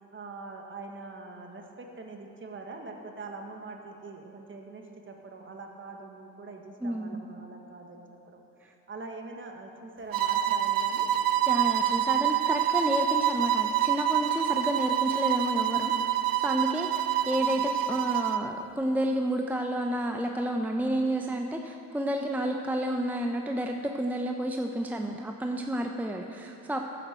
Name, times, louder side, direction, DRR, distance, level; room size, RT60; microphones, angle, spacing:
voice 1, 0.1-8.4 8.9-11.1 17.4-17.7, right 3 dB, 35° right, 2 dB, 1.6 m, -43 dB
voice 2, 6.8-7.2 8.6-8.7 11.5-26.8, right 1 dB, 5° right, 2 dB, 0.7 m, -30 dB
sound 1, 10.1-18.5, right 11 dB, 75° right, 0.6 m, -26 dB
14.0 x 9.1 x 4.5 m, 2.8 s
cardioid pair, 80°, 35 cm